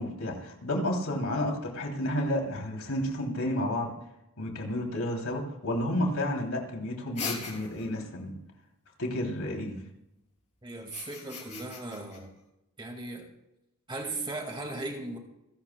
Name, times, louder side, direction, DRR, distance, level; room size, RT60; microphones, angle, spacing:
voice 1, 0.0-3.9 4.4-8.3 9.0-9.7, left 1 dB, 75° left, 1 dB, 2.9 m, -31 dB
sound 1, 7.2-8.0 10.8-12.2, left 5 dB, 30° left, 3.4 m, -39 dB
voice 2, 10.6-12.3 12.8-13.3 13.9-15.2, right 2 dB, 20° right, 2 dB, 2.0 m, -37 dB
28.5 x 11.5 x 2.2 m, 0.86 s
head